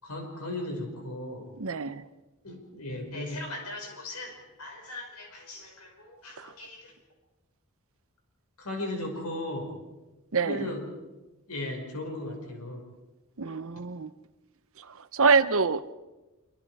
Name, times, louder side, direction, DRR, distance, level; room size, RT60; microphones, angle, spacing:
voice 1, 0.0-1.5 2.4-6.9 8.6-9.8 10.4-10.8 11.5-12.8, left 1 dB, 85° left, 3 dB, 5.4 m, -37 dB
voice 2, 1.6-2.1 6.4-6.5 10.3-10.7 13.4-14.1 14.8-15.9, right 4 dB, 65° right, 12 dB, 0.9 m, -26 dB
26.0 x 25.0 x 4.9 m, 1.1 s
head